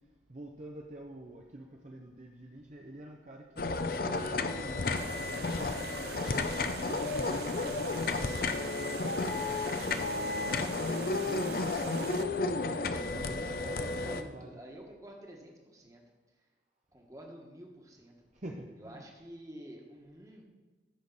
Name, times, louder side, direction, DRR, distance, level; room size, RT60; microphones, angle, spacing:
voice 1, 0.3-9.5 9.9-10.7 11.0-12.5 13.1-14.6 18.3-19.1, right 1 dB, 40° right, 0 dB, 0.8 m, -48 dB
sound 1, 3.6-14.2, left 3 dB, 50° left, 0.6 m, -32 dB
sound 2, 5.0-12.2, right 9 dB, 55° right, 0.3 m, -45 dB
voice 2, 13.3-16.0 16.9-18.3 18.8-20.4, right 1 dB, 20° right, 0 dB, 1.5 m, -50 dB
14.5 x 7.0 x 4.1 m, 1.3 s
head